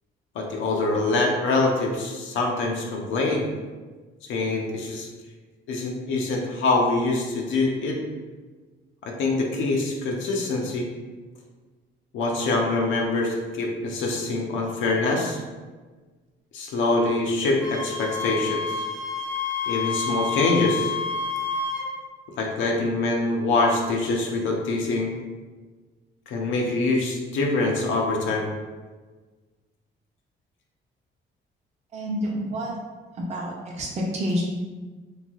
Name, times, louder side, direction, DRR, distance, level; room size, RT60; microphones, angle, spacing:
voice 1, 0.4-3.5 4.3-5.1 5.7-8.0 9.0-10.9 12.1-15.4 16.5-18.8 19.7-20.9 22.4-25.1 26.3-28.5, left 2 dB, 80° left, 0 dB, 0.5 m, -24 dB
Wind instrument woodwind instrument, 17.6-21.9, left 5 dB, 75° right, 0.9 m, -29 dB
voice 2, 31.9-32.7 33.3-34.4, equal, 35° right, -4 dB, 0.6 m, -28 dB
3.1 x 2.6 x 2.3 m, 1.4 s
cardioid pair, 90°, 20 cm